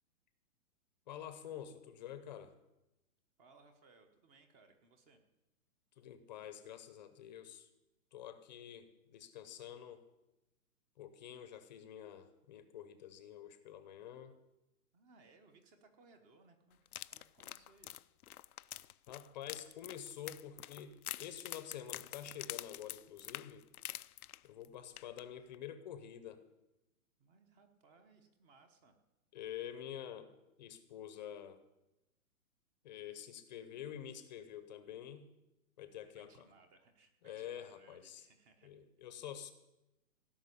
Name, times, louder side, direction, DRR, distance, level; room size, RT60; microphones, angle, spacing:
voice 1, 1.1-2.5 6.0-7.7 8.1-10.0 11.0-14.3 19.1-23.6 24.4-26.4 29.3-30.3 30.6-31.6 32.8-35.3 35.8-36.5 37.2-38.3 38.6-39.5, left 10 dB, 30° left, 10 dB, 0.8 m, -48 dB
voice 2, 3.4-5.2 14.9-18.0 27.2-29.0 36.1-38.7, right 3 dB, 20° right, 7 dB, 1.0 m, -65 dB
sound 1, 16.9-24.7 25.0-25.2 25.5-25.6, left 13 dB, 80° left, 0.6 m, -47 dB
17.0 x 6.2 x 9.8 m, 0.96 s
hypercardioid pair, 160°, 44 cm